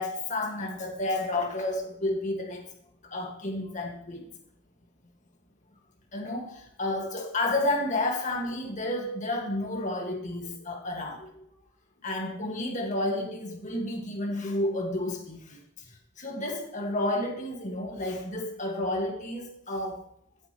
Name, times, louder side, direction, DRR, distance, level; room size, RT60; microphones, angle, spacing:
voice 1, 0.0-2.7 3.1-4.3 6.1-11.3 12.0-15.6 16.2-20.0, left 1 dB, 40° left, 1.9 m, -31 dB
15.0 x 7.8 x 3.1 m
head